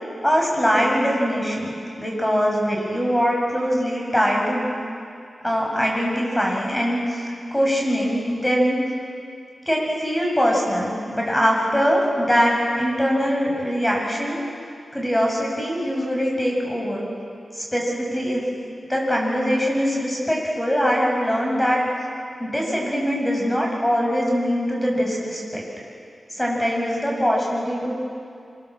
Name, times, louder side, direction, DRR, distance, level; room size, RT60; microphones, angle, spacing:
voice 1, 0.2-4.7 5.4-7.3 7.5-8.8 9.7-14.4 14.9-17.1 17.5-18.4 18.9-21.8 22.4-25.6 26.3-27.9, equal, 10° left, -1 dB, 7.8 m, -22 dB
26.5 x 26.0 x 7.7 m, 2.4 s
wide cardioid pair, 70°, 0 cm